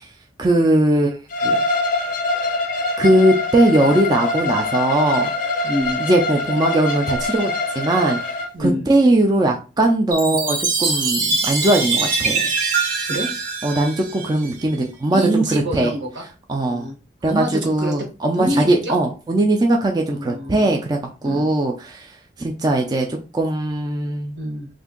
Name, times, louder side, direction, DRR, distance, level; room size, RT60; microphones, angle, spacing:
voice 1, 0.4-1.2 1.4-1.6 3.0-5.3 6.0-8.2 8.6-12.5 13.6-15.9 16.5-16.9 17.2-22.1 22.4-23.1 23.3-24.4, right 1 dB, 20° right, 1 dB, 0.4 m, -19 dB
Bowed string instrument, 1.3-8.5, left 2 dB, 45° left, 0.5 m, -24 dB
voice 2, 5.6-6.0 8.5-8.8 13.0-13.3 15.1-16.2 16.7-16.9 17.3-17.9 18.3-18.9 20.1-20.8 21.2-21.5 24.3-24.7, right 1 dB, 75° right, 1 dB, 1.2 m, -25 dB
Chime, 10.1-14.6, right 4 dB, 50° right, 0.7 m, -23 dB
2.8 x 2.5 x 3.6 m, 0.33 s
head